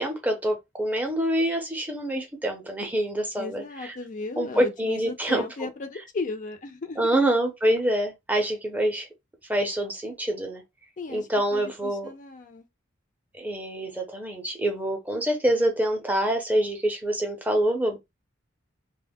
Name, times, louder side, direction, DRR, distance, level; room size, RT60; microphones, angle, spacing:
voice 1, 0.0-3.9 4.4-5.4 7.0-9.1 9.5-10.6 11.1-12.1 13.3-18.0, right 1 dB, 10° right, 0.5 m, -26 dB
voice 2, 3.4-7.1 11.0-12.7, left 3 dB, 40° left, 0.4 m, -36 dB
2.1 x 2.0 x 3.4 m
head